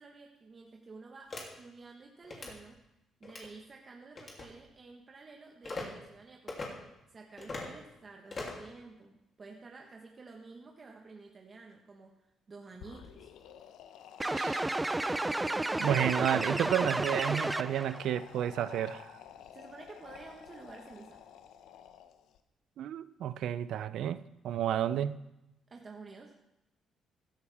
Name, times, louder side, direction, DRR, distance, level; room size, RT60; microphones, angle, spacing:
voice 1, 0.0-2.8 3.2-6.7 7.1-13.3 19.5-21.2 25.7-26.3, right 3 dB, 35° right, 1.4 m, -51 dB
sound 1, 1.3-1.4 2.2-2.5 3.2-3.5 4.2-4.5 5.6-5.9 6.5-6.7 7.4-7.7 8.3-8.7, left 3 dB, 35° left, 3.0 m, -40 dB
sound 2, 12.7-22.4, left 9 dB, 85° left, 0.8 m, -52 dB
sound 3, 14.2-18.0, right 2 dB, 15° right, 0.4 m, -32 dB
voice 2, 15.8-19.1 22.8-25.2, right 10 dB, 75° right, 0.5 m, -31 dB
15.5 x 11.5 x 3.6 m
cardioid pair, 95°, 0 cm